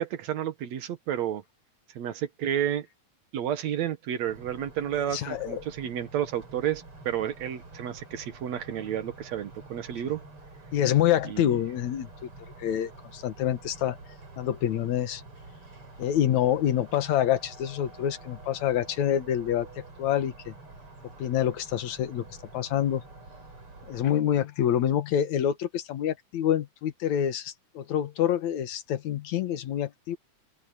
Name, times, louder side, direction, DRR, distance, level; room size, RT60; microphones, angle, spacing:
voice 1, 0.0-1.4 1.9-2.9 3.3-10.2 11.2-11.5, right 10 dB, 70° right, 2.5 m, -31 dB
sound 1, 4.3-24.2, right 2 dB, 45° right, 6.7 m, -48 dB
voice 2, 4.9-5.6 10.7-12.1 12.6-14.0 14.4-15.2 16.0-19.7 20.0-20.5 21.2-22.3 22.5-23.0 23.9-30.2, left 10 dB, 75° left, 2.6 m, -27 dB
open air
omnidirectional pair, 3.4 m